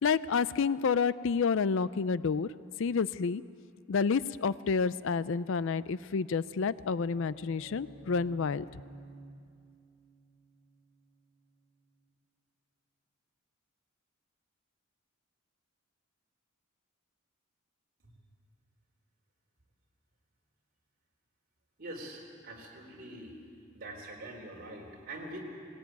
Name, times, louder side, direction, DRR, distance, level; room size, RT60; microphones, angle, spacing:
voice 1, 0.0-2.5 2.8-3.4 3.9-8.6, left 5 dB, 60° left, 17 dB, 0.4 m, -29 dB
sound 1, 6.3-12.0, right 1 dB, 75° left, 6.4 m, -54 dB
voice 2, 21.8-23.4 23.7-25.4, right 1 dB, 45° right, 0 dB, 3.7 m, -44 dB
19.0 x 18.5 x 9.3 m, 2.3 s
head